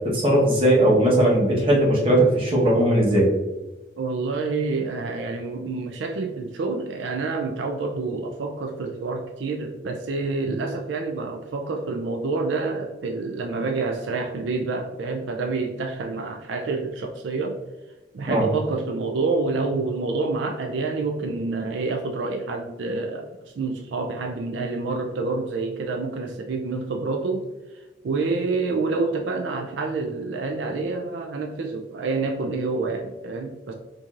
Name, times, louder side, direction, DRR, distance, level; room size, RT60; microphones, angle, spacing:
voice 1, 0.0-3.3 18.3-18.5, right 1 dB, 30° right, -5 dB, 1.0 m, -18 dB
voice 2, 4.0-17.6 18.1-27.5 28.0-33.7, right 3 dB, 85° right, 4 dB, 0.4 m, -28 dB
4.5 x 2.7 x 2.4 m, 1.1 s
head